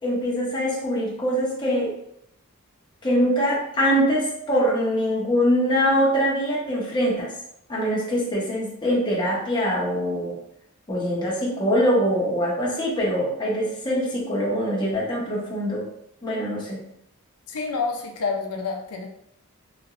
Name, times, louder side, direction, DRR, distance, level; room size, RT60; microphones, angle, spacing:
voice 1, 0.0-1.9 3.0-7.3 7.7-10.4 10.9-15.9 16.2-16.8, equal, 20° left, -5 dB, 0.9 m, -23 dB
voice 2, 17.5-19.1, left 4 dB, 85° left, 2 dB, 0.5 m, -28 dB
3.3 x 3.0 x 2.5 m, 0.75 s
head